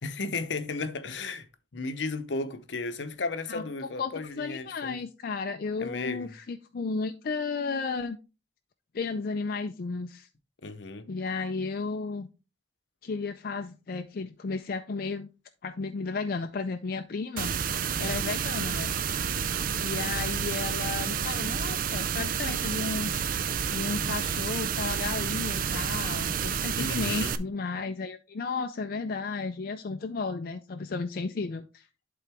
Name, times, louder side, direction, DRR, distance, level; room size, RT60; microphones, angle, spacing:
voice 1, 0.0-1.5 1.7-5.0 5.8-6.3 10.6-11.1 26.8-27.4, left 3 dB, 75° left, 0.8 m, -34 dB
voice 2, 4.4-8.2 8.9-10.3 11.1-12.3 13.0-15.3 15.6-17.5 18.0-18.9 19.8-31.9, left 4 dB, 55° left, 0.4 m, -33 dB
sound 1, 17.4-27.4, right 7 dB, 50° right, 0.5 m, -30 dB
11.5 x 3.8 x 3.4 m
head